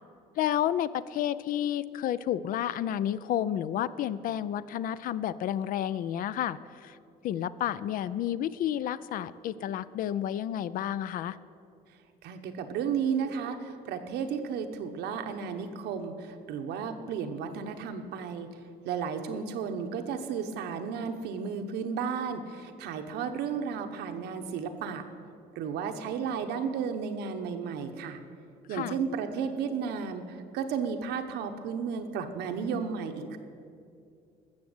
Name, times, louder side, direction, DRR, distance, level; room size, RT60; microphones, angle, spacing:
voice 1, 0.4-7.0 7.2-11.4 28.7-28.9, left 11 dB, 60° left, 16 dB, 0.4 m, -31 dB
voice 2, 12.2-18.5 18.8-25.0 25.5-28.2 28.7-33.4, right 6 dB, 85° right, 6 dB, 1.1 m, -33 dB
14.0 x 7.2 x 7.9 m, 2.4 s
cardioid pair, 145°, 17 cm